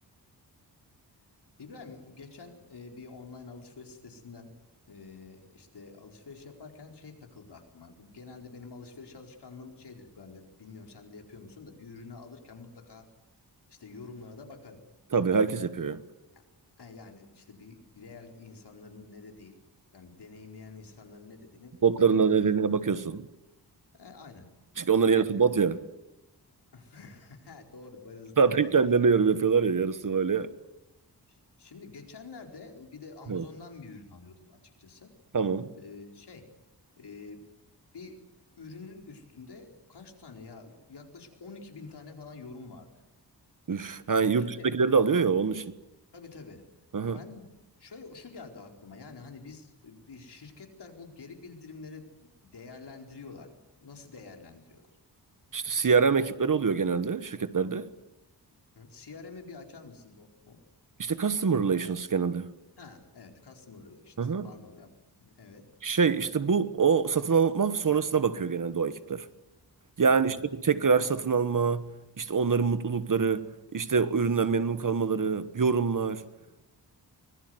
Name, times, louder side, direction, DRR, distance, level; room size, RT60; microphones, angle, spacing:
voice 1, 1.6-4.5 4.9-13.1 13.7-14.8 16.3-16.4 16.8-19.5 19.9-21.9 22.1-22.5 23.9-24.5 25.0-25.4 26.7-28.7 31.3-35.1 35.8-36.5 37.0-37.4 37.9-43.0 44.5-44.7 46.1-46.6 47.0-47.5 47.8-54.9 58.8-60.6 62.8-64.9 65.2-65.6 70.2-70.4, left 4 dB, 75° left, 4.5 m, -47 dB
voice 2, 15.1-16.0 21.8-23.3 24.8-25.8 28.4-30.5 33.3-33.4 35.3-35.7 43.7-45.7 46.9-47.2 55.5-57.9 61.0-62.5 64.2-64.5 65.8-69.3 70.0-71.9 72.2-76.2, right 5 dB, 50° right, 1.3 m, -25 dB
24.5 x 21.5 x 7.9 m
wide cardioid pair, 115°, 41 cm